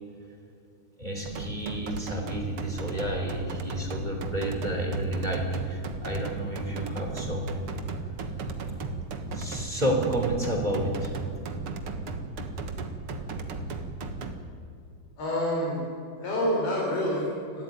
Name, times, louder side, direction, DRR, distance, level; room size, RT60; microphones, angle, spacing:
voice 1, 1.0-7.7 9.3-11.1, right 1 dB, 10° right, 2 dB, 3.0 m, -30 dB
sound 1, 1.3-14.3, right 3 dB, 60° right, 1.5 m, -35 dB
voice 2, 15.2-15.8 16.2-17.6, equal, 75° left, -3 dB, 6.9 m, -27 dB
30.0 x 13.0 x 9.4 m, 2.5 s
omnidirectional pair, 4.6 m